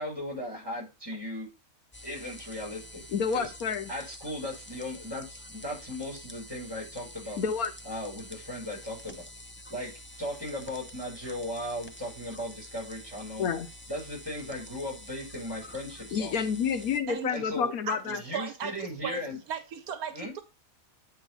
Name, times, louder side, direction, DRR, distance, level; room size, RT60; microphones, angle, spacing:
voice 1, 0.0-1.5 2.0-3.0 3.3-3.5 3.9-7.4 7.8-9.2 9.7-13.5 13.9-16.4 17.3-17.7 18.0-19.4 20.1-20.3, left 1 dB, 15° right, 5.3 m, -37 dB
sound 1, 1.9-17.0, equal, 20° left, 0.3 m, -47 dB
voice 2, 3.1-3.9 7.4-7.7 13.4-13.7 16.1-18.2, left 6 dB, 80° left, 1.3 m, -29 dB
voice 3, 17.1-17.4 17.9-20.4, right 8 dB, 80° right, 1.3 m, -37 dB
9.1 x 3.7 x 4.6 m
omnidirectional pair, 1.5 m